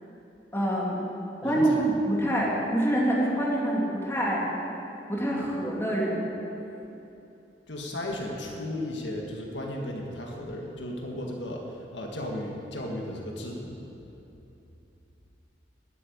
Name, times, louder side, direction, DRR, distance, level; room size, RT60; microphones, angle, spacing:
voice 1, 0.5-1.0 1.4-4.4 5.1-6.2, right 1 dB, 15° left, -4 dB, 2.7 m, -26 dB
voice 2, 1.4-1.8 7.7-11.7 11.9-13.8, left 1 dB, 80° left, 0 dB, 1.8 m, -35 dB
12.5 x 8.6 x 9.3 m, 2.9 s
head